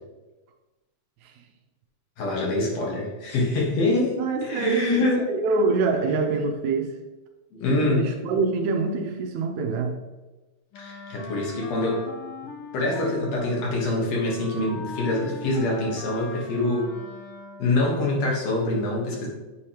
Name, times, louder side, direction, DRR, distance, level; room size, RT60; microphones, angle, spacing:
voice 1, 2.2-5.3 7.6-8.1 10.8-12.1 12.7-16.9 17.6-19.3, left 2 dB, 65° left, -2 dB, 2.4 m, -25 dB
voice 2, 4.2-7.0 7.7-10.0, right 4 dB, 75° right, 3 dB, 2.0 m, -25 dB
Wind instrument woodwind instrument, 10.7-17.9, left 3 dB, 85° left, 1.2 m, -40 dB
8.4 x 4.9 x 2.9 m, 1.1 s
omnidirectional pair, 3.4 m